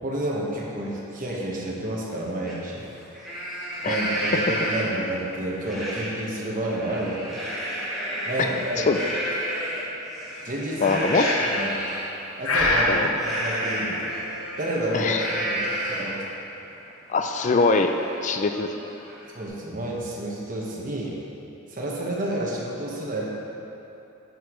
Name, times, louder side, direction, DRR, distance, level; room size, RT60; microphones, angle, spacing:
voice 1, 0.0-2.8 3.8-7.3 8.2-9.1 10.4-11.7 12.4-14.0 14.6-16.2 19.3-21.2 21.7-23.3, right 1 dB, 40° right, -4 dB, 1.2 m, -30 dB
Livestock farm animals working animals, 2.5-2.6 3.0-5.1 5.6-6.1 6.5-12.0 13.1-16.2 16.7-16.8 17.1-19.5, equal, ahead, 1.6 m, -31 dB
voice 2, 10.8-11.2 12.9-13.1 14.9-15.3 17.1-17.9 18.2-18.9, left 4 dB, 35° left, 6 dB, 0.3 m, -23 dB
Breathing, 11.1-11.7 12.4-13.0, left 2 dB, 70° left, 0.9 m, -23 dB
8.8 x 8.0 x 3.1 m, 3.0 s
head